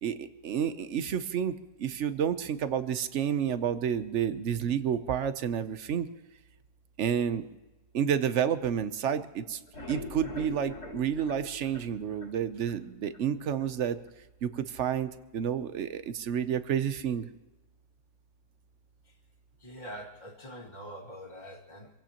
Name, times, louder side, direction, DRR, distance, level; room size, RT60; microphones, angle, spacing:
voice 1, 0.0-6.1 7.0-7.5 7.9-9.6 9.9-14.0 14.4-17.3, right 8 dB, 55° right, 12 dB, 0.9 m, -30 dB
sound 1, 9.5-12.8 13.1-13.2 13.6-13.7 14.1-14.2, left 2 dB, 70° left, 4.3 m, -43 dB
voice 2, 19.6-21.9, equal, 25° left, 0 dB, 2.3 m, -44 dB
26.0 x 16.5 x 2.9 m, 1.1 s
omnidirectional pair, 1.7 m